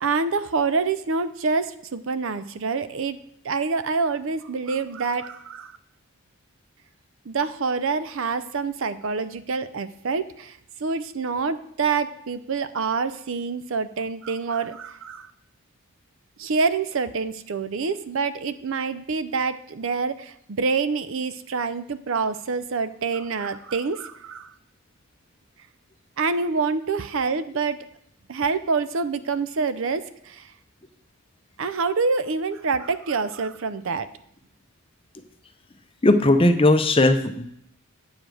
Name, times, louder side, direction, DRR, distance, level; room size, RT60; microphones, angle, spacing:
voice 1, 0.0-3.2 3.4-5.7 7.3-15.3 16.4-24.5 26.2-27.8 28.3-30.5 31.6-34.1, right 4 dB, 60° right, 14 dB, 0.5 m, -26 dB
voice 2, 36.0-37.5, left 2 dB, 25° left, 8 dB, 0.6 m, -17 dB
8.6 x 5.0 x 7.6 m, 0.70 s
head